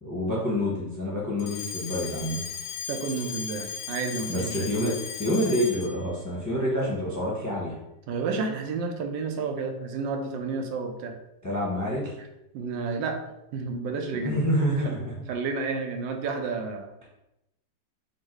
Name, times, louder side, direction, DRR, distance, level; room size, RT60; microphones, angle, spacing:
voice 1, 0.0-2.4 4.3-7.8 11.4-12.1 14.1-15.1, equal, 15° left, -5 dB, 0.6 m, -27 dB
Alarm, 1.4-6.0, left 7 dB, 90° left, 1.3 m, -36 dB
voice 2, 2.9-4.7 8.1-11.1 12.5-13.2 13.5-14.5 14.8-14.9 15.3-16.9, right 4 dB, 90° right, 4 dB, 1.4 m, -31 dB
4.5 x 2.5 x 4.6 m, 0.90 s
omnidirectional pair, 1.9 m